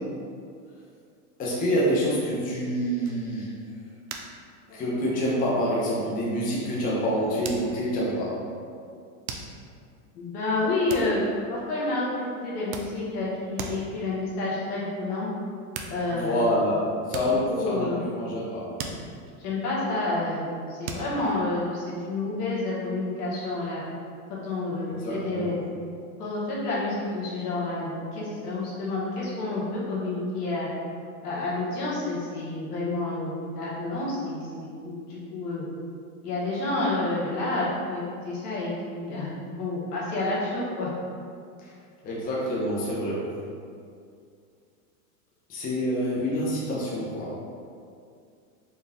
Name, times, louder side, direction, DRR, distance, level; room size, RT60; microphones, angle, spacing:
voice 1, 1.4-3.5 4.7-8.4 16.1-18.7 24.9-25.6 41.6-41.7 42.0-43.4 45.5-47.3, equal, 20° left, -6 dB, 0.6 m, -27 dB
sound 1, 3.1-3.6 4.1-4.5 4.8-5.2 5.8-5.9 7.4-8.1 9.3-9.8 10.9-11.8 12.4-13.3 13.6-14.0 15.4-15.5 15.7-16.5 17.0-18.5 18.8-20.0 20.9-21.5, right 5 dB, 65° right, 0.6 m, -39 dB
voice 2, 10.1-11.2 11.5-15.3 15.9-16.4 17.5-18.0 19.4-23.8 24.3-25.6 26.2-30.7 31.2-35.6 36.2-40.9, left 2 dB, 90° left, -6 dB, 1.4 m, -29 dB
4.3 x 2.3 x 3.5 m, 2.3 s
supercardioid pair, 135°, 45 cm